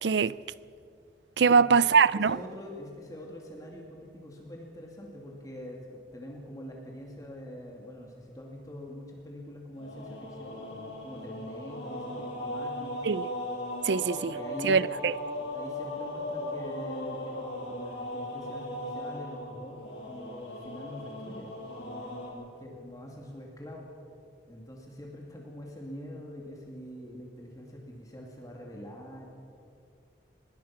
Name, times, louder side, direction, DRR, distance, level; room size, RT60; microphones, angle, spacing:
voice 1, 0.0-0.4 1.4-2.4 13.0-13.3 13.8-14.4 14.6-15.1, right 5 dB, 75° right, 0.5 m, -23 dB
voice 2, 2.1-13.0 14.3-14.9 15.4-23.9 24.5-29.3, equal, 20° left, 2.5 m, -44 dB
sound 1, 9.7-22.3, left 1 dB, 90° left, 6.3 m, -38 dB
24.0 x 21.0 x 5.9 m
head